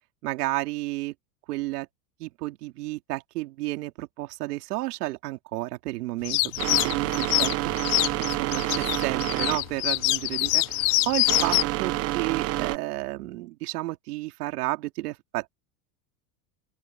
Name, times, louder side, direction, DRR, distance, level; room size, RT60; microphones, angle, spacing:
voice 1, 0.2-1.1 1.5-1.9 2.2-6.5 6.8-15.6, right 19 dB, 80° right, 2.9 m, -32 dB
sound 1, 6.2-11.6, left 24 dB, 55° left, 0.5 m, -25 dB
sound 2, 6.6-12.8, right 16 dB, 30° right, 1.0 m, -29 dB
open air
supercardioid pair, 160°, 46 cm